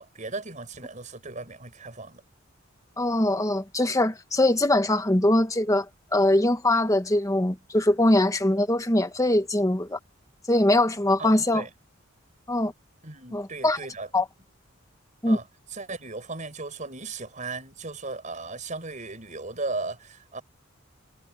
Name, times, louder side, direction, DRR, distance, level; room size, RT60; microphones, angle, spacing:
voice 1, 0.0-2.2 11.2-11.7 13.0-14.1 15.3-20.4, right 3 dB, 40° right, 5.6 m, -36 dB
voice 2, 3.0-5.9 6.1-10.0 10.5-11.6 12.5-12.7 13.3-13.8 14.1-14.2 15.2-15.4, left 1 dB, 15° left, 1.3 m, -22 dB
head